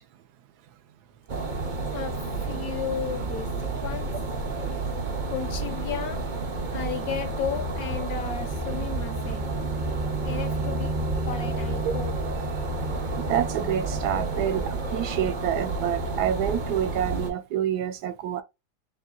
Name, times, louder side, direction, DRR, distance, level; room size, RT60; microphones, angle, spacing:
sound 1, 1.3-17.3, right 3 dB, 40° right, 0.7 m, -30 dB
voice 1, 1.9-4.1 5.3-6.2 6.7-9.5 10.2-10.9 11.3-12.1, left 8 dB, 65° left, 1.3 m, -34 dB
voice 2, 13.2-18.4, right 10 dB, 75° right, 1.1 m, -27 dB
7.1 x 2.7 x 2.3 m
omnidirectional pair, 1.7 m